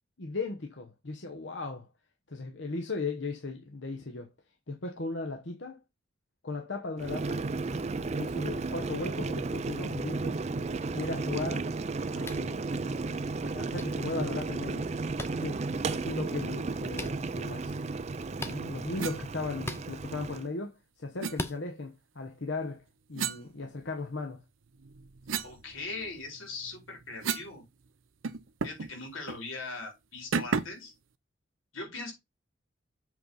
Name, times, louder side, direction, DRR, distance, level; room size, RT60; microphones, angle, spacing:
voice 1, 0.2-1.9 2.3-4.3 4.7-5.8 6.4-7.4 8.2-10.4 10.9-11.7 12.1-12.6 13.4-14.9 15.3-17.8 18.5-22.8 23.1-24.4, left 3 dB, 65° left, 1.0 m, -37 dB
Boiling, 7.0-20.5, right 3 dB, 35° right, 0.4 m, -34 dB
sound 1, 12.2-12.5 13.7-13.8 15.2-15.3 16.9-17.1 18.4-18.6 19.6-19.8 21.3-21.6, left 2 dB, 10° left, 0.6 m, -37 dB
sound 2, 19.0-19.2 21.2-21.4 23.2-24.2 24.7-27.6 27.8-27.9 28.2-28.9 29.3-29.4 30.3-30.9, right 5 dB, 85° right, 0.7 m, -35 dB
voice 2, 25.4-27.6 28.6-30.9 31.7-32.1, left 3 dB, 85° left, 4.1 m, -40 dB
7.7 x 3.9 x 5.5 m
head